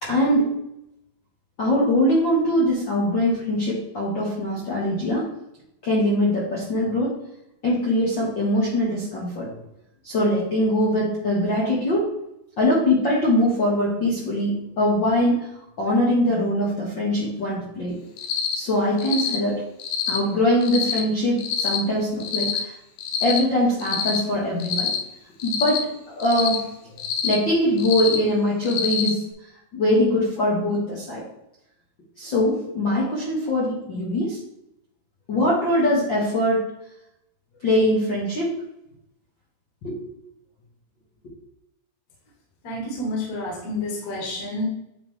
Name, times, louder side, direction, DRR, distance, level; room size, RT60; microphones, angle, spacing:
voice 1, 0.0-0.5 1.6-5.3 5.8-7.2 7.6-9.5 10.0-12.1 12.6-15.5 15.8-18.0 18.5-19.6 20.1-22.7 23.2-24.9 25.4-26.7 27.2-29.2 29.7-31.2 32.2-34.4 35.3-36.7 37.6-38.5 39.8-40.0, left 1 dB, 65° left, -6 dB, 1.1 m, -22 dB
Cricket, 18.2-18.6 19.0-19.4 19.8-20.2 20.6-21.0 21.4-21.8 22.2-22.6 23.0-23.4 23.8-24.2 24.6-25.0 25.4-25.8 26.2-26.6 27.0-27.3 27.8-28.2 28.6-29.1, left 8 dB, 85° left, 1.6 m, -26 dB
voice 2, 42.6-44.7, left 1 dB, 50° left, -2 dB, 2.6 m, -29 dB
9.8 x 3.8 x 3.2 m, 0.82 s
omnidirectional pair, 4.5 m